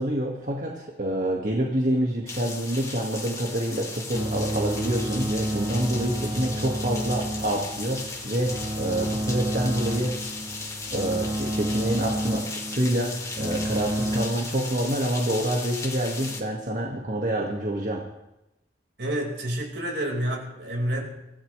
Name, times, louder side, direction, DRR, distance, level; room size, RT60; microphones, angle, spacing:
voice 1, 0.0-10.3 10.9-18.0, right 1 dB, 50° right, -1 dB, 2.0 m, -27 dB
sound 1, 2.3-16.4, left 3 dB, 20° left, 2.2 m, -37 dB
sound 2, 4.1-14.3, right 1 dB, 20° right, 1.1 m, -30 dB
voice 2, 19.0-21.0, right 1 dB, 80° right, -1 dB, 5.1 m, -28 dB
24.0 x 16.0 x 3.4 m, 0.93 s
head